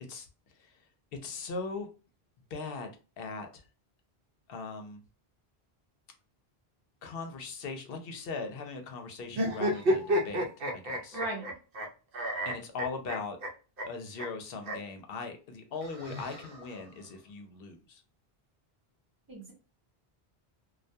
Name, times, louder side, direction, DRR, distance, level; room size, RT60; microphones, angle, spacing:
voice 1, 1.2-1.9 2.5-2.9 3.2-3.6 4.5-5.0 7.0-11.2 12.4-13.4 13.8-18.0, left 4 dB, 70° left, 5 dB, 0.8 m, -39 dB
sound 1, 9.3-11.9 12.1-13.5 13.8-13.9 14.2-14.3 14.6-14.8 15.8-16.8, equal, 65° right, 0.8 m, -31 dB
voice 2, 11.1-11.4 19.3-19.5, right 2 dB, 25° right, -3 dB, 0.8 m, -36 dB
2.3 x 2.2 x 2.6 m, 0.34 s
omnidirectional pair, 1.1 m